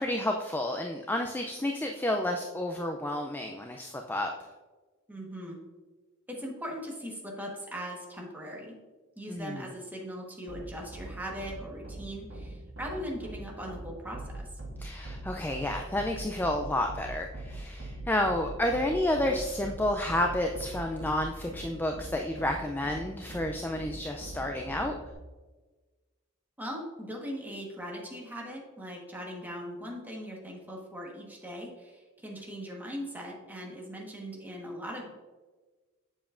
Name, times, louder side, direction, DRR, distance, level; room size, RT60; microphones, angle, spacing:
voice 1, 0.0-4.3 9.3-9.7 14.8-25.0, left 1 dB, 10° left, 3 dB, 0.3 m, -30 dB
voice 2, 5.1-5.6 6.3-8.8 9.2-14.5 26.6-35.1, equal, 10° right, -2 dB, 1.2 m, -40 dB
sound 1, 10.5-25.1, right 1 dB, 70° right, 1.4 m, -42 dB
7.2 x 7.1 x 2.5 m, 1.3 s
head